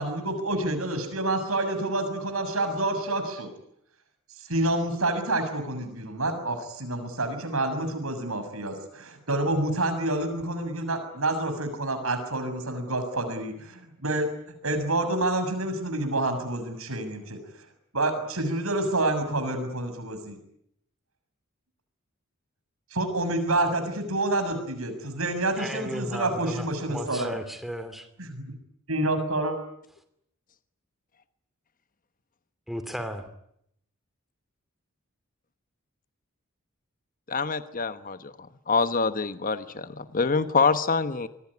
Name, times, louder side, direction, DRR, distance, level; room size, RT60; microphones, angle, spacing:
voice 1, 0.0-3.5 4.5-14.3 14.6-17.4 17.9-20.4 22.9-27.4 28.2-28.4 28.9-29.5, right 2 dB, 85° right, 8 dB, 6.8 m, -28 dB
voice 2, 25.6-28.1 32.7-33.3, equal, ahead, 9 dB, 2.6 m, -35 dB
voice 3, 37.3-41.3, left 4 dB, 40° left, 11 dB, 1.2 m, -26 dB
26.0 x 20.5 x 9.8 m, 0.74 s
head